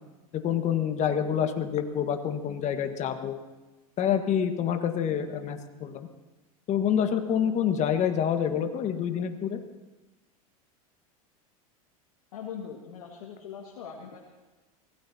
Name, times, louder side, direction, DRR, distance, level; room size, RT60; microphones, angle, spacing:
voice 1, 0.3-3.4 4.0-6.1 6.7-9.6, left 8 dB, 40° left, 6 dB, 1.6 m, -27 dB
voice 2, 12.3-14.2, left 7 dB, 75° left, 0 dB, 2.1 m, -41 dB
24.0 x 17.5 x 2.9 m, 1.2 s
hypercardioid pair, 90°, 19 cm